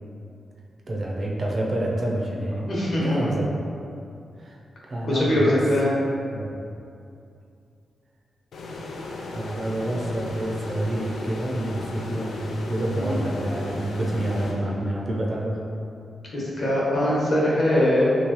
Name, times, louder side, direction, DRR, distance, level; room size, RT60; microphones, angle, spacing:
voice 1, 0.9-2.6 3.0-3.4 4.4-4.6 4.9-5.6 6.3-6.5 9.3-15.6, right 1 dB, 45° right, -3 dB, 0.5 m, -28 dB
voice 2, 2.7-3.2 5.0-5.9 12.9-13.2 16.3-18.1, left 1 dB, 55° left, -6 dB, 0.9 m, -22 dB
sound 1, 8.5-15.2, left 2 dB, 85° left, 0.3 m, -36 dB
3.1 x 2.7 x 3.0 m, 2.6 s
wide cardioid pair, 120°, 0 cm